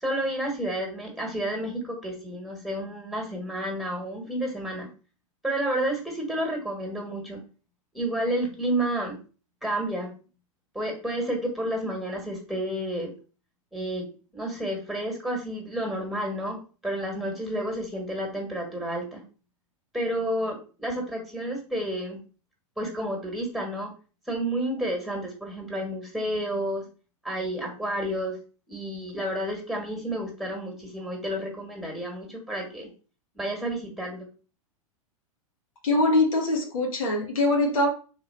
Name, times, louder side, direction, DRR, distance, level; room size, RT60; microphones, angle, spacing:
voice 1, 0.0-4.9 5.4-7.4 7.9-9.2 9.6-10.1 10.7-13.1 13.7-14.0 14.3-19.2 19.9-22.2 22.8-23.9 24.3-26.9 27.2-28.3 28.7-32.9 33.3-34.3, right 1 dB, ahead, 1 dB, 1.6 m, -30 dB
voice 2, 35.8-37.9, left 2 dB, 70° left, 0 dB, 1.4 m, -23 dB
3.6 x 2.7 x 4.4 m, 0.36 s
hypercardioid pair, 100°, 18 cm